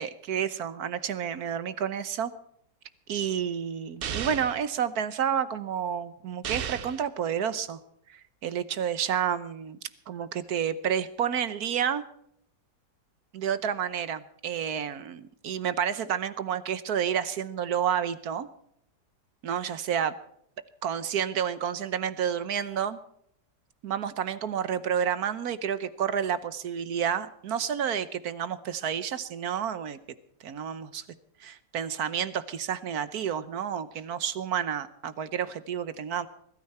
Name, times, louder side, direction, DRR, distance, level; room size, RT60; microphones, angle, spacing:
voice 1, 0.0-2.3 3.1-7.8 8.1-9.8 10.1-12.0 13.3-18.5 19.4-20.1 20.8-23.0 23.8-30.0 30.4-31.0 31.4-36.3, right 8 dB, 65° right, 14 dB, 1.3 m, -30 dB
sound 1, 4.0-4.6 6.4-7.0, right 9 dB, 85° right, 0.5 m, -34 dB
21.0 x 13.0 x 4.3 m, 0.70 s
omnidirectional pair, 1.9 m